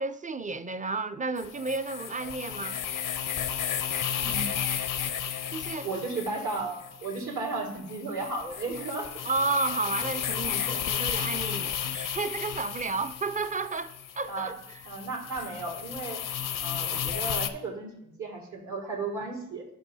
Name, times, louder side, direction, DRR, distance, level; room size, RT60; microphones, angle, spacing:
voice 1, 0.0-2.8 5.5-5.9 9.2-14.6, right 3 dB, 25° right, 0.5 m, -32 dB
sound 1, 1.4-17.5, left 9 dB, 85° left, 0.6 m, -33 dB
voice 2, 4.2-4.5 5.8-9.1 14.3-14.5 14.9-16.2 16.6-17.9 18.2-19.6, right 3 dB, 70° right, 2.1 m, -34 dB
11.5 x 5.4 x 2.7 m
cardioid pair, 65°, 31 cm